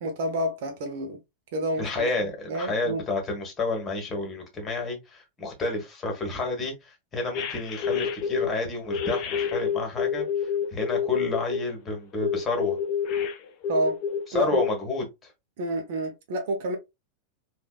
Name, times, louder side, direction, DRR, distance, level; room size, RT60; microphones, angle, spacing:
voice 1, 0.0-1.2 1.5-2.1 2.5-3.0 13.7-14.0 14.3-14.6 15.6-16.8, right 1 dB, 50° right, 0.7 m, -29 dB
voice 2, 1.8-12.8 14.3-15.3, left 3 dB, 20° left, 1.4 m, -30 dB
sound 1, 7.3-8.5 8.9-11.6 12.2-14.2 14.5-14.7, left 7 dB, 40° left, 0.6 m, -28 dB
3.3 x 2.4 x 2.3 m
figure-of-eight pair, 90°, 0 cm